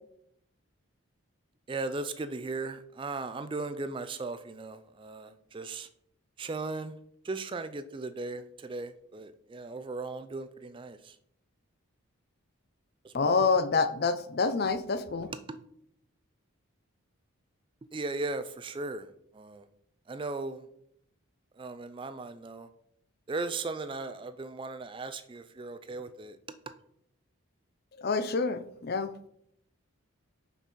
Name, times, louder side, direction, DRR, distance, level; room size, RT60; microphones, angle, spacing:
voice 1, 1.7-5.9 6.4-6.9 7.2-11.0 13.0-13.5 15.3-15.6 17.9-19.0 19.3-19.6 20.1-20.6 21.6-22.7 23.3-26.4, right 3 dB, 25° right, 11 dB, 0.3 m, -37 dB
voice 2, 13.1-15.3 28.0-29.1, left 4 dB, 45° left, 12 dB, 0.4 m, -27 dB
6.0 x 5.4 x 4.2 m, 0.72 s
head